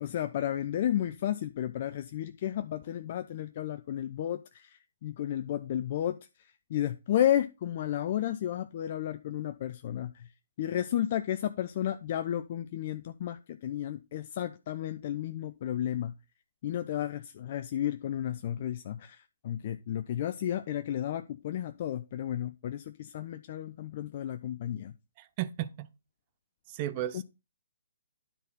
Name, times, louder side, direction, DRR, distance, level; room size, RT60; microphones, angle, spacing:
voice 1, 0.0-4.4 5.0-6.2 6.7-10.1 10.6-13.4 13.6-16.1 16.6-19.2 19.4-24.9, left 11 dB, 45° left, 0.6 m, -32 dB
voice 2, 25.2-25.9 26.7-27.2, right 13 dB, 30° right, 0.8 m, -34 dB
10.0 x 4.2 x 5.4 m
hypercardioid pair, 140°, 0 cm